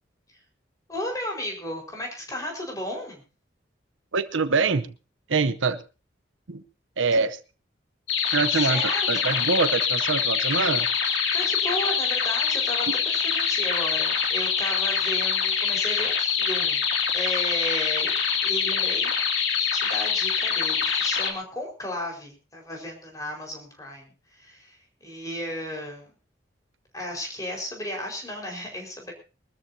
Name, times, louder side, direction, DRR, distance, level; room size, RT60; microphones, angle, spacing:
voice 1, 0.9-3.2 7.1-7.2 8.5-9.3 11.3-16.8 17.1-18.1 18.4-19.1 19.6-26.1 26.9-29.1, left 1 dB, 20° left, 0 dB, 4.8 m, -34 dB
voice 2, 4.1-4.9 5.3-5.8 6.5-6.6 7.0-7.4 8.3-10.9, right 4 dB, 85° right, 12 dB, 0.8 m, -24 dB
sound 1, 8.1-21.3, left 6 dB, 75° left, 2.6 m, -25 dB
23.0 x 13.5 x 2.8 m, 0.32 s
head